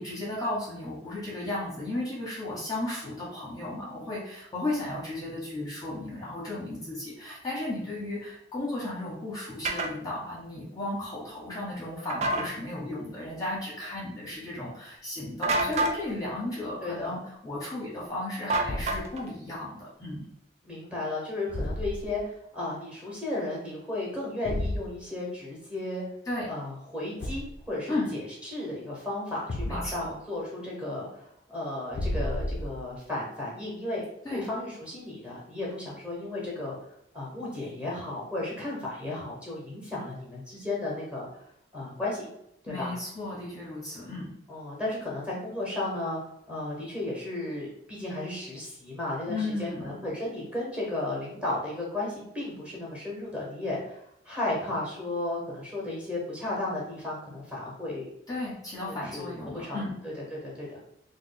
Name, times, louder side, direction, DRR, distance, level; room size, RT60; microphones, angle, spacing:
voice 1, 0.0-20.3 26.3-26.5 27.9-28.1 29.7-30.1 34.2-34.4 42.7-44.3 49.3-49.9 58.3-60.0, left 2 dB, 20° left, -6 dB, 0.8 m, -34 dB
sound 1, 9.6-9.9 12.1-12.5 15.4-16.0 18.5-19.3, right 2 dB, 35° right, 0.3 m, -27 dB
voice 2, 16.6-17.2 20.6-26.0 26.5-34.0 34.3-36.8 37.1-41.3 41.7-42.2 42.6-42.9 44.5-46.2 46.5-54.0 54.2-58.1 58.9-60.8, left 2 dB, 5° right, -5 dB, 0.9 m, -34 dB
Thump thud, 18.6-19.2 21.5-22.2 24.4-24.9 27.2-27.7 29.5-30.1 31.9-32.9, left 1 dB, 50° left, 0.3 m, -32 dB
3.0 x 2.1 x 3.8 m, 0.76 s
head